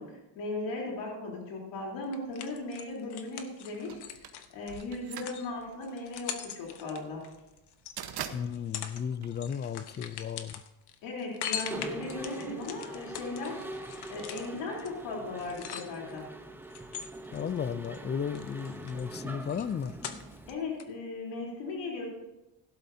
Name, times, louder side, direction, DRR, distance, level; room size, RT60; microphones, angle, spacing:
voice 1, 0.0-4.0 4.5-7.2 11.0-13.6 14.1-16.3 20.5-22.1, left 2 dB, 80° left, -2 dB, 3.6 m, -37 dB
sound 1, 2.1-8.0 8.4-9.0 9.3-16.2 16.7-18.0 18.3-20.5 20.8-20.9, left 9 dB, 65° left, 1.1 m, -42 dB
sound 2, 3.9-10.0, right 9 dB, 65° right, 1.1 m, -44 dB
voice 2, 8.3-10.6 17.3-19.9, left 7 dB, 25° left, 16 dB, 0.4 m, -34 dB
Mechanisms, 11.6-20.5, right 2 dB, 5° right, 0.8 m, -43 dB
17.0 x 11.5 x 2.7 m, 0.95 s
cardioid pair, 135°, 43 cm